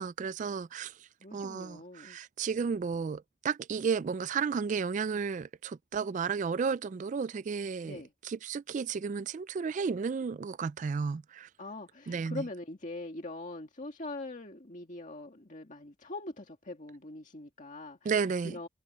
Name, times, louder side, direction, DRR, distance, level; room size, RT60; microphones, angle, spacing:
voice 1, 0.0-11.5 12.1-12.4 18.0-18.6, right 5 dB, 40° right, 0.3 m, -33 dB
voice 2, 1.2-2.2 7.8-8.1 11.6-18.1 18.4-18.7, left 2 dB, 40° left, 2.0 m, -42 dB
head